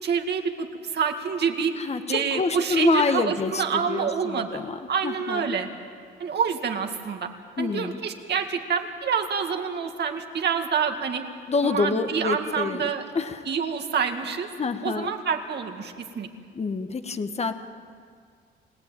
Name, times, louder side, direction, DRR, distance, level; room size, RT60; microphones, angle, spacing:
voice 1, 0.0-1.7 2.1-4.6 4.9-5.7 6.2-7.3 7.6-11.2 11.6-13.0 13.5-14.5 14.8-16.3, right 6 dB, 60° right, 4 dB, 2.2 m, -27 dB
voice 2, 1.8-4.8 5.0-5.6 7.6-8.0 11.5-12.9 13.1-13.5 14.6-15.1 16.5-17.5, left 4 dB, 30° left, 9 dB, 1.3 m, -27 dB
29.0 x 15.5 x 9.1 m, 2.1 s
cardioid pair, 90°, 20 cm